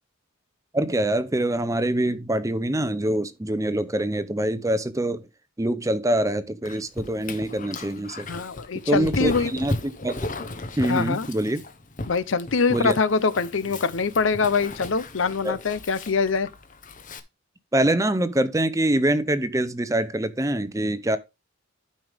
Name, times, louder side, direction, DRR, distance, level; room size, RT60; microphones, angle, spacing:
voice 1, 0.7-5.3 5.6-8.3 8.9-10.3 10.8-11.6 12.7-12.9 15.4-15.6 17.7-21.2, right 1 dB, 15° right, 0.7 m, -24 dB
Dog, 6.6-17.2, left 2 dB, 40° left, 1.0 m, -36 dB
voice 2, 8.3-9.5 10.9-11.3 12.1-16.5, left 4 dB, 65° left, 0.6 m, -24 dB
12.0 x 5.3 x 3.5 m
head